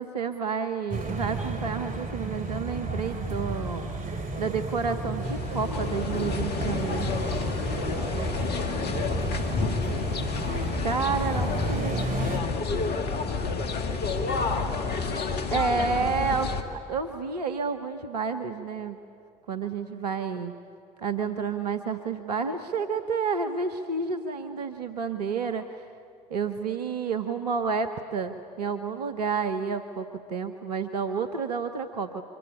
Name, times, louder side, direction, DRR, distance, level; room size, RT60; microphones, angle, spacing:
voice 1, 0.0-3.9 4.4-7.3 10.8-12.4 15.5-19.0 19.5-20.5 21.0-25.9 26.3-32.2, right 5 dB, 85° right, 7 dB, 1.0 m, -30 dB
sound 1, 0.9-12.4, right 2 dB, 45° right, 4.1 m, -33 dB
sound 2, 5.2-16.6, left 4 dB, 55° left, 2.1 m, -30 dB
voice 2, 7.8-9.8 11.2-15.1, right 1 dB, 25° right, 3 dB, 6.9 m, -43 dB
25.0 x 23.0 x 9.8 m, 2.3 s
figure-of-eight pair, 50°, 20 cm